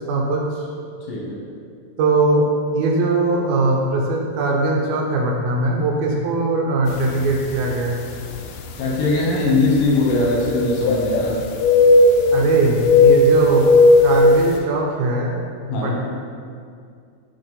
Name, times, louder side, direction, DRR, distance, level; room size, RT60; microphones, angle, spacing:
voice 1, 0.1-0.4 2.0-8.0 12.3-13.7 14.0-15.4 15.8-16.0, right 2 dB, 75° right, 0 dB, 2.3 m, -20 dB
sound 1, 7.2-7.3 8.1-8.2 10.1-11.3 11.6-12.4 12.8-14.2, left 3 dB, 85° left, 1.9 m, -14 dB
voice 2, 8.8-11.4 15.7-16.0, left 2 dB, 70° left, -4 dB, 2.5 m, -20 dB
5.9 x 5.7 x 5.2 m, 2.3 s
omnidirectional pair, 4.7 m